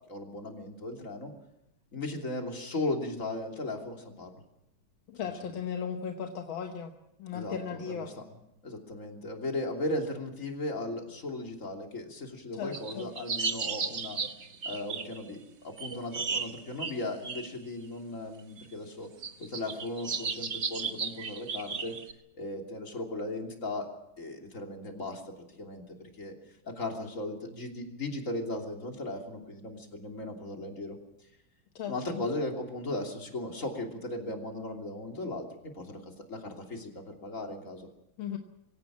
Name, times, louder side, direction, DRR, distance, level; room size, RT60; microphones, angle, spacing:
voice 1, 0.1-1.3 1.9-4.3 5.2-5.3 7.3-8.0 8.6-14.2 14.6-19.1 19.4-22.0 22.4-23.9 24.2-26.3 26.6-31.0 31.9-37.9, left 2 dB, 40° left, 2 dB, 3.4 m, -37 dB
voice 2, 5.1-6.9 7.2-8.1 12.5-13.1 31.8-32.2 38.2-38.4, left 7 dB, 80° left, 5 dB, 2.0 m, -36 dB
sound 1, 12.7-15.3 15.8-17.5 18.6-18.7 19.2-22.1, right 5 dB, 40° right, 1.3 m, -34 dB
23.5 x 17.5 x 7.5 m, 0.86 s
omnidirectional pair, 2.2 m